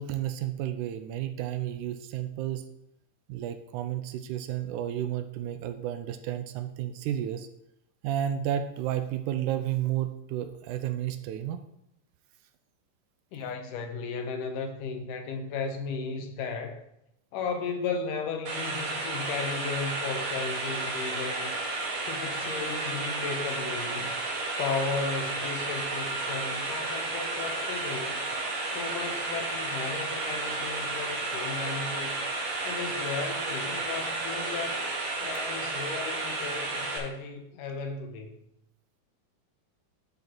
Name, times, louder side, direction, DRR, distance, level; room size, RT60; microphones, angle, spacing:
voice 1, 0.0-2.7 3.3-7.5 8.0-11.6, right 11 dB, 80° right, 2.0 m, -32 dB
voice 2, 13.3-16.8 17.3-21.6 22.1-24.1 24.6-28.3 28.7-32.3 32.6-34.8 35.2-38.4, left 5 dB, 85° left, 2.6 m, -35 dB
sound 1, 18.5-37.0, right 2 dB, 60° right, 3.0 m, -32 dB
10.5 x 5.2 x 4.5 m
omnidirectional pair, 3.7 m